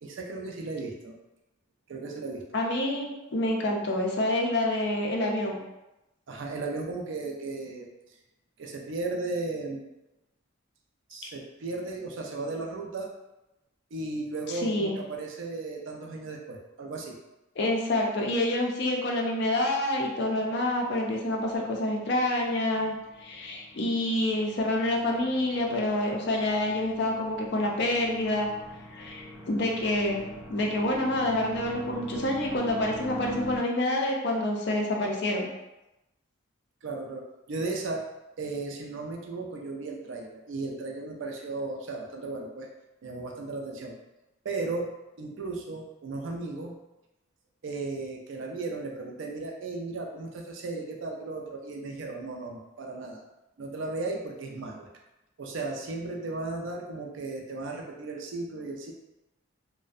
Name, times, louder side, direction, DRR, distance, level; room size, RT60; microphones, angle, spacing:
voice 1, 0.0-1.2 1.9-2.4 6.3-7.9 8.6-9.9 11.1-13.1 13.9-17.2 36.8-38.1 38.4-42.7 43.0-44.0 44.4-44.9 45.2-46.8 47.6-53.2 53.6-54.9 55.4-58.9, right 3 dB, 65° right, 1 dB, 0.4 m, -35 dB
voice 2, 2.5-5.6 14.6-15.0 17.6-22.9 23.2-28.5 28.9-30.2 30.5-35.5, left 1 dB, 55° left, 0 dB, 0.4 m, -27 dB
sound 1, 20.6-33.6, right 1 dB, 25° right, 0.6 m, -44 dB
2.5 x 2.1 x 2.3 m, 0.95 s
head